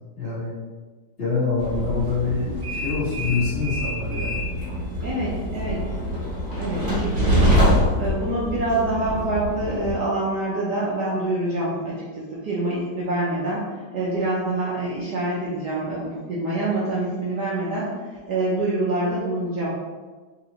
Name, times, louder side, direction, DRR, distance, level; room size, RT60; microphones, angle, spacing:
voice 1, 0.1-0.5 1.2-4.4 7.1-7.3, left 4 dB, 30° left, -12 dB, 1.6 m, -26 dB
Train, 1.6-9.9, equal, 40° right, 1.1 m, -25 dB
voice 2, 5.0-6.0 6.6-17.9 18.3-19.7, right 2 dB, 65° right, -7 dB, 1.1 m, -26 dB
4.2 x 2.9 x 2.9 m, 1.4 s
omnidirectional pair, 2.3 m